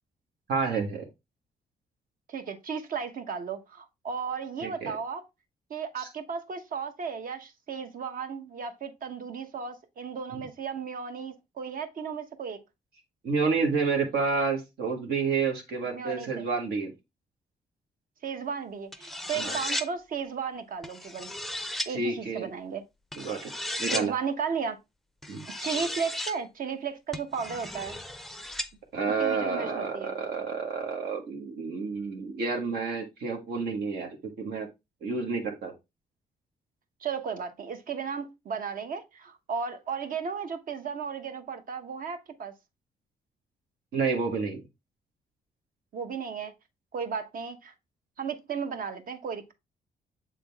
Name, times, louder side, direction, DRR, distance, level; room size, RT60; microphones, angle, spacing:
voice 1, 0.5-1.0 4.6-5.0 6.0-6.1 13.2-16.9 19.3-19.6 21.9-22.5 23.1-23.5 23.8-24.1 25.3-25.4 28.9-34.1 34.4-34.7 35.0-35.7 43.9-44.6, right 4 dB, 75° right, 1.4 m, -29 dB
voice 2, 2.3-5.2 5.7-12.6 15.9-16.4 18.2-21.3 21.9-22.8 23.9-24.8 25.6-28.0 29.1-30.1 37.0-42.5 45.9-46.5 46.9-47.7 48.2-49.5, right 6 dB, 60° right, 1.0 m, -34 dB
sound 1, 18.9-19.9 20.8-21.9 23.1-24.1 25.2-26.4 27.1-28.7, left 1 dB, ahead, 0.5 m, -35 dB
7.4 x 3.8 x 3.4 m
cardioid pair, 120°, 16 cm